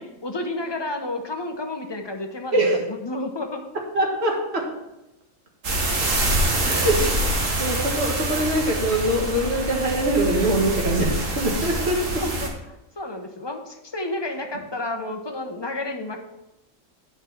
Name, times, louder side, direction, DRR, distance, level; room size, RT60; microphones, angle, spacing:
voice 1, 0.0-2.6 2.9-3.6 12.2-16.2, left 2 dB, 20° left, 3 dB, 0.9 m, -31 dB
voice 2, 2.5-2.8 3.9-4.8 6.7-12.2, right 1 dB, 55° right, 0 dB, 1.9 m, -23 dB
sound 1, 5.6-12.5, right 1 dB, 75° right, 1.9 m, -25 dB
8.9 x 5.1 x 5.8 m, 0.92 s
omnidirectional pair, 1.3 m